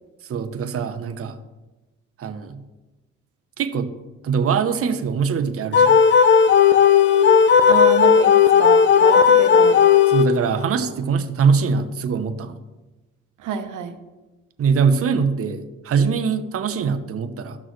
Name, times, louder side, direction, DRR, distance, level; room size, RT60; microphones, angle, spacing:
voice 1, 0.3-1.4 2.2-2.6 3.6-3.9 4.2-6.0 10.1-12.6 14.6-17.6, right 6 dB, 50° right, 8 dB, 0.8 m, -22 dB
sound 1, 5.7-10.6, left 7 dB, 40° left, 0.6 m, -14 dB
voice 2, 7.7-9.8 13.4-14.0, right 8 dB, 85° right, 7 dB, 1.0 m, -28 dB
13.0 x 6.1 x 3.2 m, 1.1 s
cardioid pair, 90°, 30 cm